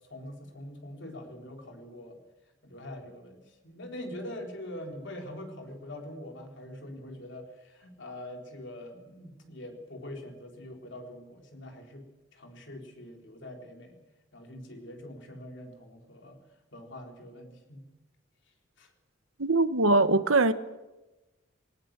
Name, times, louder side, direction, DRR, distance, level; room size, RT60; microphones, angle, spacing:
voice 1, 0.1-2.2 2.6-14.0 14.3-16.4 16.7-17.8 18.8-18.9, left 1 dB, 60° left, 3 dB, 4.0 m, -44 dB
voice 2, 19.4-20.5, right 2 dB, 85° right, 12 dB, 1.3 m, -22 dB
19.5 x 18.5 x 7.7 m, 1.0 s
head